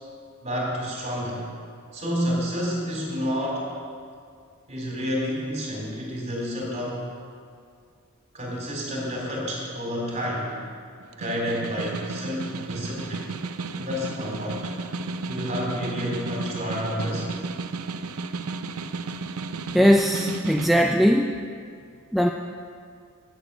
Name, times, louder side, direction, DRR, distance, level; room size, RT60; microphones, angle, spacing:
voice 1, 0.4-1.4 1.9-3.7 4.7-7.0 8.3-10.6 11.1-13.3 13.8-14.7 15.3-17.3, equal, 35° right, -3 dB, 3.7 m, -29 dB
Snare drum, 11.0-20.8, right 3 dB, 90° right, 0.6 m, -33 dB
voice 2, 19.7-21.4 22.1-22.3, equal, ahead, 2 dB, 0.4 m, -19 dB
12.0 x 9.3 x 6.9 m, 2.2 s
head